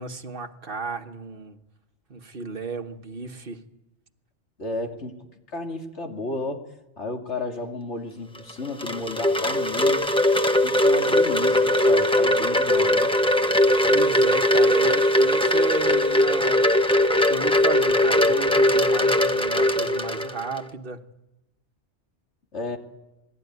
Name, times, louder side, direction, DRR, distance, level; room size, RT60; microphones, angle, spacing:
voice 1, 0.0-1.6 2.1-3.6 13.9-16.7 17.3-21.0, right 4 dB, 55° right, 7 dB, 1.4 m, -33 dB
voice 2, 4.6-5.2 5.5-6.7 7.0-10.0 10.6-13.1 22.5-22.8, left 2 dB, 80° left, 3 dB, 2.8 m, -32 dB
Wind chime, 8.4-20.6, left 1 dB, 5° left, 1.1 m, -20 dB
27.5 x 20.0 x 9.5 m, 0.97 s
omnidirectional pair, 1.2 m